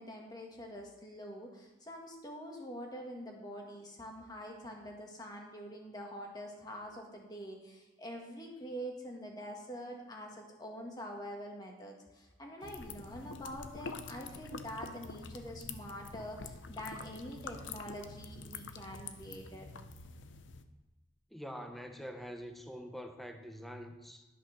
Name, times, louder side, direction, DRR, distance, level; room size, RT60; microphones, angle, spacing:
voice 1, 0.0-19.7, equal, 20° left, 1 dB, 1.7 m, -45 dB
sound 1, 12.6-20.6, left 4 dB, 80° left, 0.7 m, -47 dB
voice 2, 21.3-24.2, equal, ahead, 5 dB, 0.8 m, -45 dB
11.5 x 5.7 x 6.0 m, 1.1 s
head